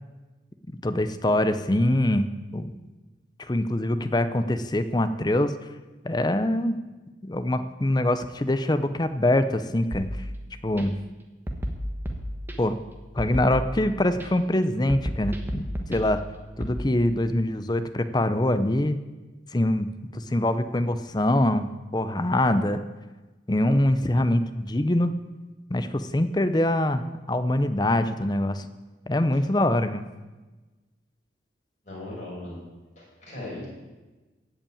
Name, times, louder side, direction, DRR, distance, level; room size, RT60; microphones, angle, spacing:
voice 1, 0.7-2.8 3.4-5.5 6.0-6.8 7.2-10.2 10.6-11.0 12.6-12.8 13.1-15.6 15.9-16.2 16.6-19.0 19.5-22.8 23.5-25.1 25.7-28.7 29.1-30.0, left 1 dB, 20° left, 11 dB, 0.6 m, -24 dB
sound 1, 9.9-10.8 11.5-12.8 13.2-14.3 14.9-16.8, equal, 10° right, 1.2 m, -33 dB
voice 2, 31.8-32.6 33.0-33.7, left 1 dB, 40° left, -5 dB, 5.7 m, -38 dB
16.0 x 5.5 x 8.7 m, 1.2 s
head